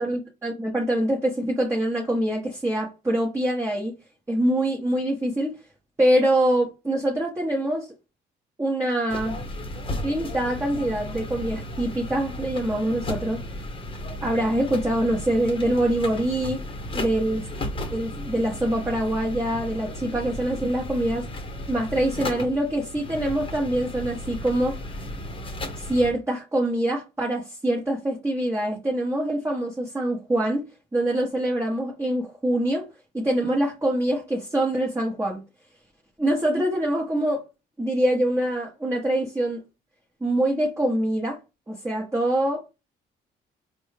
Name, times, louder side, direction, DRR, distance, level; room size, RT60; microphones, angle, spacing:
voice 1, 0.0-3.9 4.3-5.5 6.0-7.9 8.6-9.4 10.0-13.4 14.2-16.6 16.9-17.4 17.9-21.3 21.7-24.8 25.8-30.6 30.9-32.9 33.1-35.4 36.2-37.4 37.8-39.6 40.2-41.4 41.7-42.6, right 1 dB, 15° right, 0.9 m, -24 dB
sound 1, 9.1-26.1, left 1 dB, 25° left, 1.0 m, -34 dB
4.5 x 2.2 x 3.3 m
cardioid pair, 90°, 20 cm